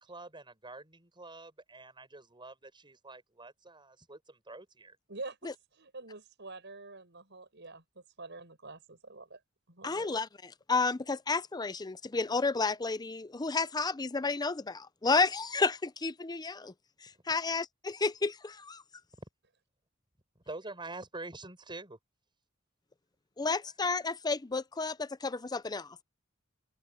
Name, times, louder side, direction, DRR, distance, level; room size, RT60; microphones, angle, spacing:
voice 1, 0.0-5.0 20.5-22.0, right 2 dB, 25° right, 7.1 m, -46 dB
voice 2, 5.1-7.8 8.2-9.4 9.7-10.3, right 3 dB, 60° right, 7.4 m, -46 dB
voice 3, 9.8-10.3 10.7-16.7 17.0-18.8 23.4-26.0, left 4 dB, 20° left, 0.6 m, -31 dB
open air
head